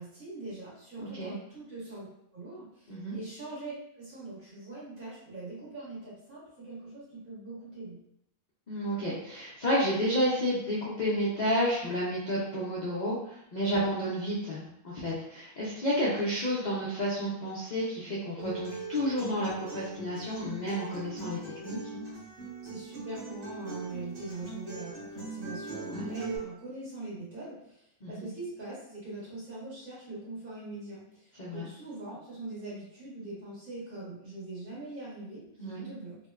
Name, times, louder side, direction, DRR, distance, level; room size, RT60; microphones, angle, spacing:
voice 1, 0.0-2.1 2.3-8.0 22.6-36.2, right 2 dB, 70° right, -9 dB, 1.9 m, -42 dB
voice 2, 1.0-1.3 2.9-3.1 8.7-21.4 21.6-21.8 25.7-26.0 28.0-28.3 31.4-31.7 35.6-35.8, equal, 80° left, -6 dB, 0.4 m, -31 dB
Acoustic guitar, 18.4-26.4, right 2 dB, 50° right, 1.6 m, -40 dB
3.4 x 2.1 x 2.3 m, 0.76 s
omnidirectional pair, 1.6 m